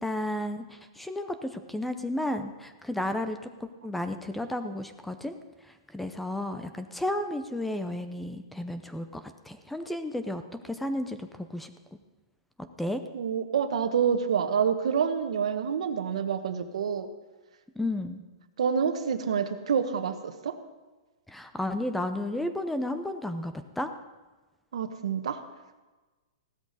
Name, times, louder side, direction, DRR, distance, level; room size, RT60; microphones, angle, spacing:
voice 1, 0.0-5.4 5.6-11.7 12.8-13.0 17.8-18.2 21.3-23.9, left 1 dB, 5° left, 9 dB, 0.6 m, -33 dB
voice 2, 13.1-17.1 18.6-20.6 24.7-25.4, right 7 dB, 80° right, 9 dB, 1.3 m, -27 dB
16.0 x 13.0 x 4.1 m, 1.2 s
hypercardioid pair, 160°, 3 cm